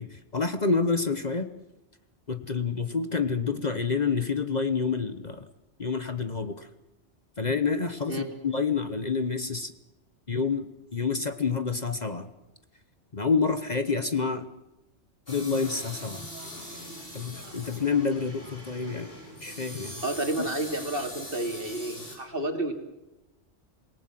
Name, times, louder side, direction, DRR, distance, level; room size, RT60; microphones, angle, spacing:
voice 1, 0.0-1.5 2.3-5.5 5.8-6.7 7.4-9.7 10.3-10.6 10.9-12.3 13.1-14.5 15.3-16.3 17.1-19.1 19.4-20.0, left 5 dB, 40° left, 9 dB, 1.1 m, -28 dB
sound 1, 15.3-22.2, left 1 dB, 55° left, 6.1 m, -42 dB
voice 2, 20.0-22.7, right 1 dB, 50° right, 4 dB, 3.0 m, -30 dB
27.0 x 18.5 x 7.6 m, 0.97 s
omnidirectional pair, 1.2 m